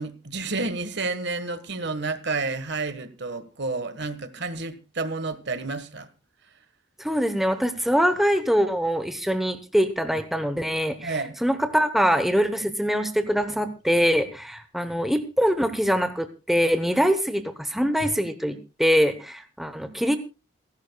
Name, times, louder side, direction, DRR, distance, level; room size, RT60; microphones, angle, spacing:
voice 1, 0.0-6.1 11.0-11.4, right 3 dB, 55° right, 1.4 m, -30 dB
voice 2, 7.0-20.2, equal, ahead, 0.8 m, -23 dB
27.5 x 11.5 x 2.3 m
head